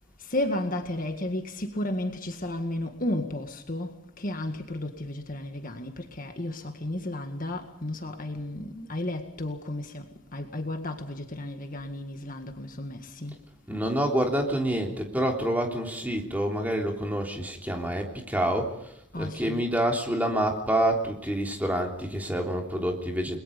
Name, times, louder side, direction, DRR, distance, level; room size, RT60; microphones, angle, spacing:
voice 1, 0.3-10.0 10.3-13.4 19.1-19.6, left 1 dB, 40° left, 1.9 m, -33 dB
voice 2, 13.7-23.4, right 1 dB, 10° right, 3.3 m, -27 dB
30.0 x 21.5 x 5.3 m
head